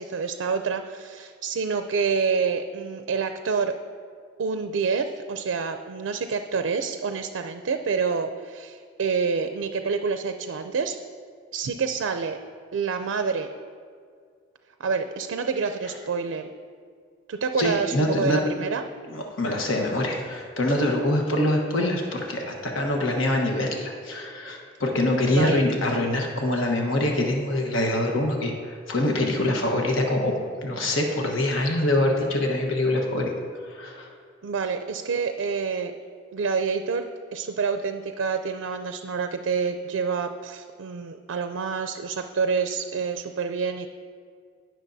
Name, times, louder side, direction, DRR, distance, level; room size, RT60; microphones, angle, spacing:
voice 1, 0.0-3.8 4.4-11.0 11.5-12.4 12.7-13.5 14.8-16.5 17.3-18.8 25.2-25.7 34.4-35.9 36.3-43.9, right 5 dB, 80° right, 7 dB, 0.4 m, -27 dB
voice 2, 17.6-18.4 19.1-30.3 30.6-33.3 33.7-34.1, left 1 dB, 80° left, 1 dB, 1.2 m, -24 dB
17.0 x 6.2 x 2.7 m, 2.1 s
head